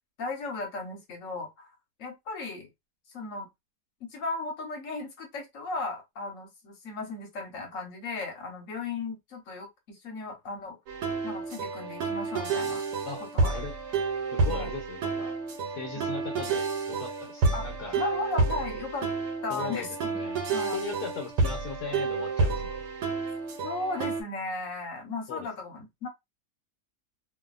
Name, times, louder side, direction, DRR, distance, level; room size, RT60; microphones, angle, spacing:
voice 1, 0.2-1.7 2.0-2.7 3.1-3.5 4.0-10.8 11.2-12.8 13.2-13.6 14.5-14.7 15.9-16.1 17.5-17.7 18.0-19.1 19.4-20.2 20.5-20.8 23.6-26.1, left 3 dB, 55° left, 1.2 m, -36 dB
sound 1, 10.9-24.2, right 4 dB, 80° right, 1.3 m, -30 dB
voice 2, 14.3-15.3 15.8-18.1 19.5-20.4 20.7-22.9 25.3-25.5, left 5 dB, 70° left, 1.2 m, -38 dB
2.7 x 2.7 x 2.4 m
omnidirectional pair, 1.8 m